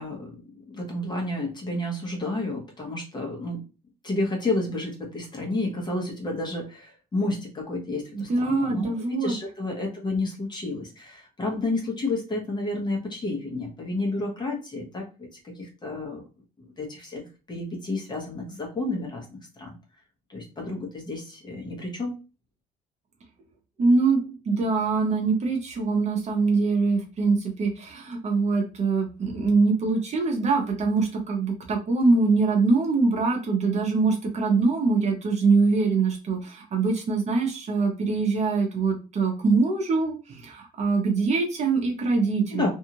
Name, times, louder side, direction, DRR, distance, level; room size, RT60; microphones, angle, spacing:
voice 1, 0.0-3.6 4.0-16.2 16.8-19.2 19.6-19.7 20.3-22.1 42.5-42.7, left 2 dB, 25° left, 0 dB, 1.0 m, -31 dB
voice 2, 8.1-9.4 23.8-24.2 24.5-42.7, right 4 dB, 40° right, 2 dB, 0.8 m, -23 dB
2.7 x 2.4 x 2.9 m, 0.32 s
cardioid pair, 110°, 17 cm